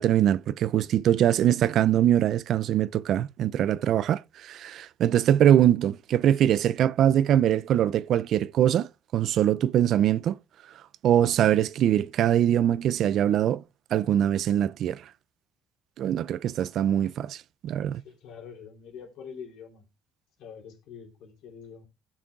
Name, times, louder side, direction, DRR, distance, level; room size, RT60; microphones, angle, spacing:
voice 1, 0.0-8.9 9.1-10.4 11.0-13.6 13.9-15.0 16.0-17.4 17.6-18.0, right 11 dB, 60° right, 0.4 m, -23 dB
voice 2, 17.9-19.8 20.4-21.8, left 7 dB, 75° left, 3.2 m, -45 dB
16.0 x 6.0 x 2.4 m
cardioid pair, 115°, 0 cm